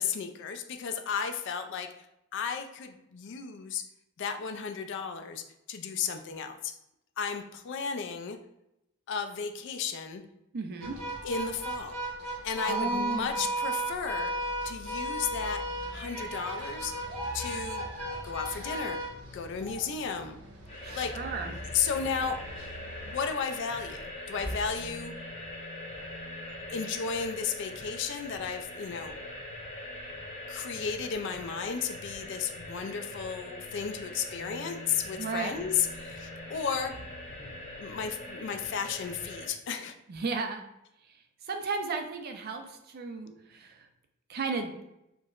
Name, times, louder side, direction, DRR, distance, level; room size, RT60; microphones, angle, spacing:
voice 1, 0.0-1.9 2.3-3.8 4.2-6.7 7.2-8.4 9.1-10.2 11.2-12.0 12.2-14.3 14.6-15.6 15.9-16.9 17.3-17.8 18.2-19.0 19.3-20.4 20.9-21.2 21.4-22.4 23.0-25.1 26.7-29.2 30.5-36.9 37.8-39.9, left 6 dB, 60° left, 7 dB, 0.3 m, -34 dB
voice 2, 10.5-11.0 12.6-13.4 20.8-21.5 35.2-35.5 40.1-40.6 41.5-43.7 44.3-44.7, right 4 dB, 50° right, 5 dB, 0.4 m, -34 dB
sound 1, 10.8-23.2, right 1 dB, 80° right, 1.1 m, -36 dB
sound 2, 20.7-39.5, left 1 dB, 30° left, 0.8 m, -42 dB
4.4 x 2.1 x 2.4 m, 0.84 s
head